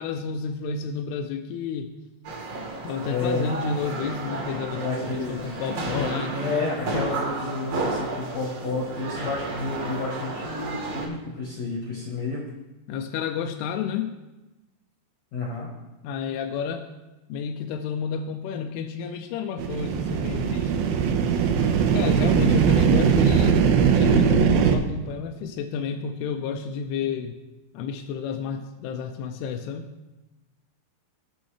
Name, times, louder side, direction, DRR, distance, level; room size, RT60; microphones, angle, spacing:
voice 1, 0.0-1.9 2.8-6.7 12.9-14.1 16.0-16.9 17.3-20.7 21.9-27.3 27.7-29.9, left 6 dB, 85° left, 5 dB, 2.4 m, -30 dB
sound 1, 2.2-11.1, right 2 dB, 45° right, 2.5 m, -32 dB
voice 2, 3.1-3.4 4.7-5.4 6.0-12.5 15.3-15.7, left 3 dB, 60° left, -2 dB, 1.9 m, -30 dB
sound 2, 19.6-24.8, right 7 dB, 85° right, 3.0 m, -20 dB
17.0 x 6.3 x 3.3 m, 1.0 s
omnidirectional pair, 5.1 m